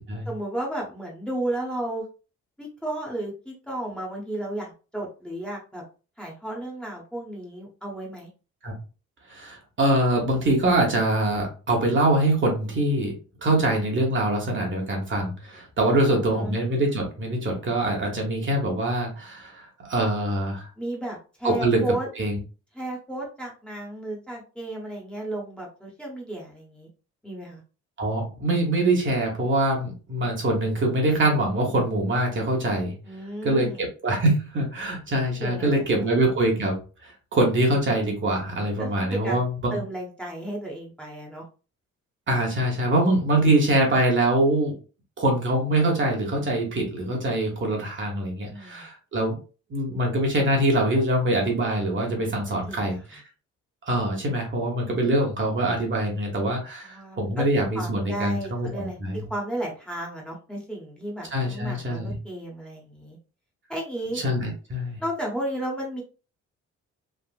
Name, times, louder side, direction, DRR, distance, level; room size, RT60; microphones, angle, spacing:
voice 1, 0.3-2.0 2.6-5.8 6.2-8.3 15.9-16.5 20.8-22.1 22.7-26.9 27.2-27.6 33.0-33.8 35.4-36.1 38.8-39.4 39.7-41.4 48.5-48.9 52.7-53.2 56.8-57.3 57.7-63.2 63.7-64.2 65.0-66.0, right 1 dB, 5° left, -3 dB, 1.1 m, -33 dB
voice 2, 9.3-13.1 13.4-20.7 21.4-21.8 22.2-22.4 28.0-32.9 33.4-39.8 42.3-44.7 45.2-49.4 49.7-53.2 53.9-59.2 61.3-62.2 64.2-65.0, right 1 dB, 40° right, 0 dB, 1.2 m, -24 dB
3.5 x 2.4 x 2.4 m, 0.34 s
cardioid pair, 90°, 30 cm